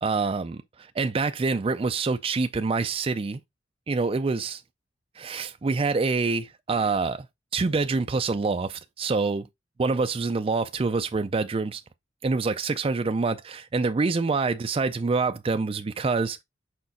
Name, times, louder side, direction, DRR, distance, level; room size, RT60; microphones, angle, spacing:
voice 1, 0.0-3.4 3.9-4.6 5.2-7.3 7.5-9.5 9.8-11.8 12.2-16.4, right 4 dB, 30° right, 0.4 m, -26 dB
6.4 x 4.6 x 4.1 m
head